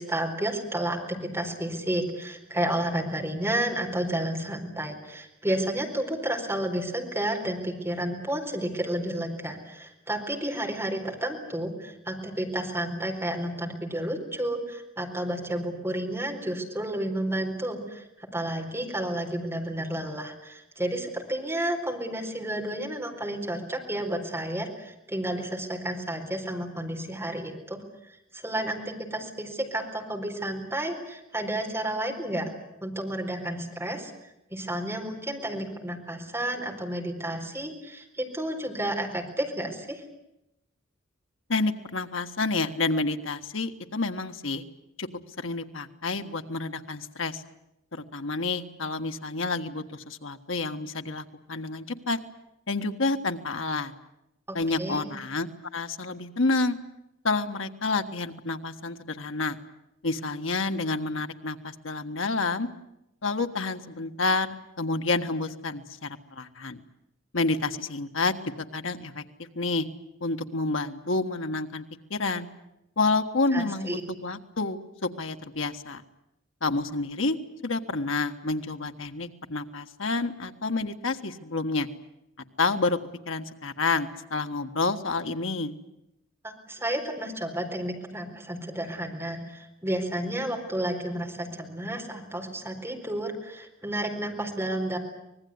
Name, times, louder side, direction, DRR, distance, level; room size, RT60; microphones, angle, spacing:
voice 1, 0.0-32.5 32.8-34.1 34.5-40.0 54.5-55.1 73.5-74.0 86.4-95.0, right 1 dB, 15° right, 2 dB, 4.3 m, -31 dB
voice 2, 41.5-44.6 45.0-45.1 45.4-47.4 47.9-52.2 52.7-53.9 54.5-56.8 57.2-59.6 60.0-62.7 63.2-64.5 64.8-66.8 67.3-68.3 68.7-69.2 69.5-69.9 70.2-71.8 72.1-72.5 73.0-76.0 76.6-77.4 77.6-81.9 82.6-83.0 83.3-85.7, left 3 dB, 80° left, 7 dB, 1.6 m, -29 dB
25.5 x 20.0 x 9.6 m, 0.85 s
head